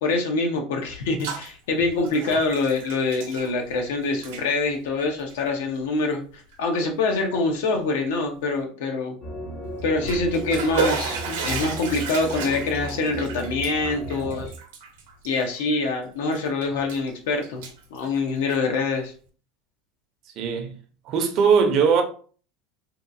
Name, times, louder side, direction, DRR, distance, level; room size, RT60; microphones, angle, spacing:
voice 1, 0.0-6.2 6.6-9.1 9.8-14.5 15.2-17.6 17.9-19.1, left 3 dB, 85° left, 0.7 m, -25 dB
Bathtub (filling or washing), 0.9-1.5 1.8-3.9 4.1-4.4 5.2-5.3 6.0-6.1 6.5-6.6 9.8-15.9 16.3-17.1 17.4-18.7, right 5 dB, 85° right, 0.7 m, -33 dB
sound 1, 9.2-14.5, equal, 30° left, 0.6 m, -35 dB
voice 2, 20.4-20.7 21.1-22.0, right 6 dB, 45° right, 0.6 m, -20 dB
2.7 x 2.3 x 2.5 m
supercardioid pair, 145°, 0 cm